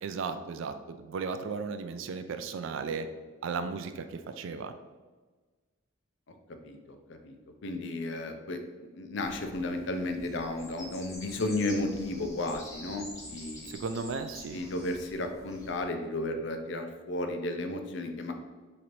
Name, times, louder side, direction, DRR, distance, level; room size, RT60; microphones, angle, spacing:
voice 1, 0.0-3.1 3.4-4.7 13.7-14.6, right 5 dB, 70° right, 9 dB, 0.3 m, -35 dB
voice 2, 7.6-13.7 14.5-18.3, left 2 dB, 60° left, 5 dB, 0.4 m, -33 dB
sound 1, 9.2-15.8, left 1 dB, 15° left, 0.7 m, -47 dB
3.0 x 2.6 x 4.3 m, 1.3 s
head